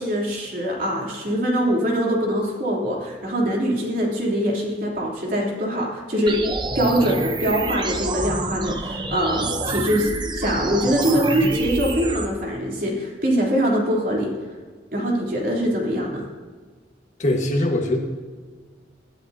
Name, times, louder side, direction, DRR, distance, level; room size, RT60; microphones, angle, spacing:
voice 1, 0.0-6.4 6.7-14.3 14.9-16.2, equal, 50° right, -2 dB, 3.3 m, -23 dB
sound 1, 6.3-12.3, right 2 dB, 25° right, 0.9 m, -28 dB
voice 2, 17.2-18.0, left 1 dB, 40° left, 1 dB, 1.6 m, -21 dB
20.0 x 12.0 x 2.8 m, 1.5 s
head